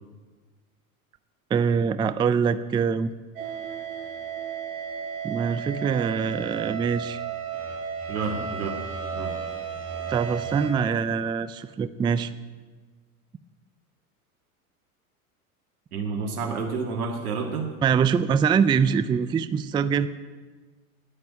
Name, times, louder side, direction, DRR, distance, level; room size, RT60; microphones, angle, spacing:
voice 1, 1.5-3.1 5.2-7.2 10.1-12.3 17.8-20.1, right 6 dB, 10° right, 14 dB, 0.3 m, -24 dB
sound 1, 3.4-10.7, right 7 dB, 50° right, 4.9 m, -33 dB
voice 2, 8.1-8.8 9.1-9.3 15.9-17.7, right 4 dB, 85° right, 2 dB, 1.9 m, -29 dB
11.0 x 9.0 x 9.5 m, 1.4 s
hypercardioid pair, 100°, 43 cm